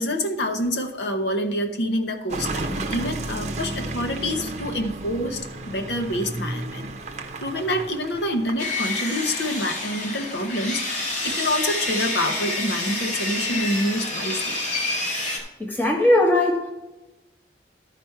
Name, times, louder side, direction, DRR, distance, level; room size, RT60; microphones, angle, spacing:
voice 1, 0.0-6.9 7.4-14.5, left 1 dB, 75° left, 4 dB, 0.9 m, -27 dB
Car passing by / Engine, 2.3-8.8, right 2 dB, 40° right, 0.8 m, -32 dB
Sawing, 8.6-15.4, left 2 dB, 40° left, 2.0 m, -28 dB
voice 2, 15.6-16.7, left 1 dB, 10° left, -1 dB, 1.3 m, -19 dB
12.5 x 5.0 x 4.5 m, 1.0 s
head